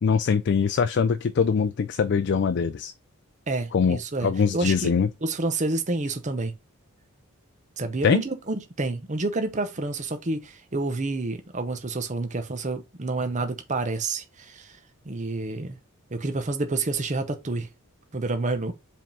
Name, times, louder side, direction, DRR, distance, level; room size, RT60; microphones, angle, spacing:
voice 1, 0.0-2.9 3.7-5.1 8.0-8.2, left 6 dB, 50° left, 0.3 m, -23 dB
voice 2, 3.5-4.9 5.2-6.5 7.8-14.8 15.1-15.8 16.1-17.7 18.1-18.7, right 3 dB, 35° right, 0.8 m, -29 dB
5.1 x 3.6 x 5.3 m
head